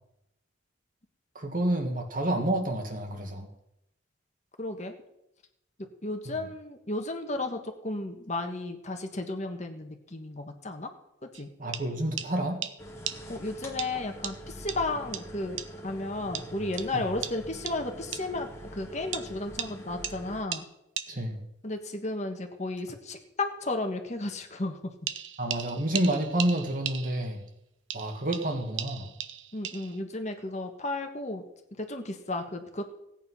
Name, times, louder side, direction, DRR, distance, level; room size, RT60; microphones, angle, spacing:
voice 1, 1.4-3.5 6.4-6.5 11.6-12.6 16.9-17.0 21.1-21.4 25.4-27.4 27.9-29.1, right 1 dB, 45° right, 4 dB, 2.0 m, -29 dB
voice 2, 4.6-4.9 6.0-10.9 11.4-11.5 13.3-15.6 15.8-20.6 21.6-24.9 29.5-31.4 31.8-32.8, left 2 dB, 35° left, 5 dB, 1.4 m, -33 dB
sound 1, 11.3-11.4 11.7-11.8 12.2-12.3 12.6-12.7 13.1-13.2 13.8-13.9 14.2-14.3 14.7-14.8 15.1-15.2 15.6-15.7 16.3-16.5 16.8-16.9 17.2-17.3 17.7-17.8 18.1-18.2 19.1-19.3 19.6-19.7 20.0-20.1 20.5-20.6 21.0-21.1 25.1-27.4 27.9-30.0, right 10 dB, 80° right, 0.9 m, -36 dB
sound 2, 12.8-20.4, right 1 dB, 15° left, 1.8 m, -44 dB
17.0 x 9.1 x 5.6 m, 0.84 s
head